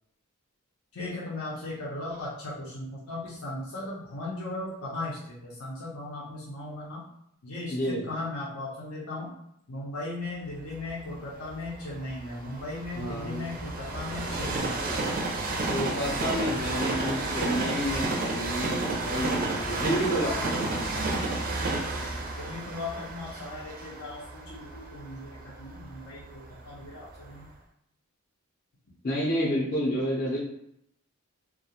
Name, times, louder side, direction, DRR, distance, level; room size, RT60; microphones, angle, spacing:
voice 1, 0.9-7.0 7.4-9.3 9.7-14.8 22.4-27.4, left 2 dB, 85° left, -6 dB, 0.7 m, -37 dB
voice 2, 7.7-8.1 12.9-13.4 15.7-20.9 29.0-30.4, equal, 40° left, -5 dB, 0.6 m, -30 dB
Train, 10.7-26.7 27.3-27.4, right 2 dB, 40° right, 0.4 m, -31 dB
2.3 x 2.1 x 2.8 m, 0.75 s
head